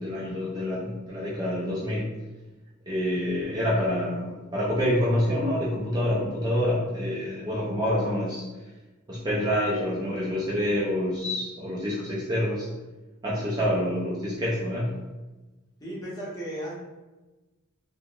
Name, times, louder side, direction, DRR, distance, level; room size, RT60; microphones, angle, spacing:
voice 1, 0.0-2.1 2.9-8.4 9.1-12.7 13.2-14.9, equal, 20° right, -7 dB, 0.4 m, -27 dB
voice 2, 15.8-16.8, right 1 dB, 15° left, -7 dB, 0.9 m, -35 dB
3.4 x 2.1 x 2.4 m, 1.1 s
head